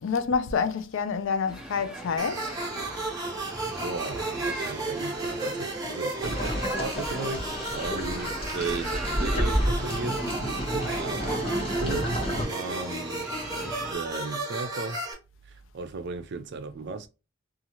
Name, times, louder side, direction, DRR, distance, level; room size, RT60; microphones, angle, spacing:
voice 1, 0.0-2.6, left 5 dB, 70° left, 0.4 m, -28 dB
sound 1, 1.5-13.9, right 1 dB, 5° right, 0.5 m, -40 dB
sound 2, 2.2-15.1, right 2 dB, 20° right, 0.9 m, -33 dB
voice 2, 3.8-10.2 10.5-12.2 12.5-13.3 13.5-15.0 15.5-17.1, right 3 dB, 60° right, 0.4 m, -36 dB
sound 3, 6.2-12.5, equal, 30° left, 1.0 m, -30 dB
2.7 x 2.4 x 2.8 m
head